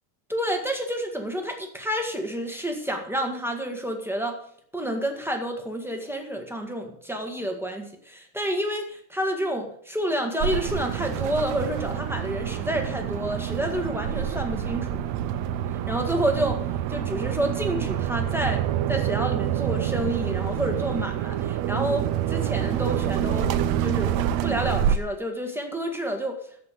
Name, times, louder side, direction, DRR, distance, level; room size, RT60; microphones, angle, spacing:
voice 1, 0.3-4.4 4.7-15.0 15.9-16.6 16.9-23.5 23.8-24.1 24.4-26.4, equal, ahead, 2 dB, 0.8 m, -29 dB
sound 1, 10.4-25.0, right 10 dB, 75° right, 1.9 m, -27 dB
14.0 x 5.6 x 7.9 m, 0.64 s
omnidirectional pair, 3.3 m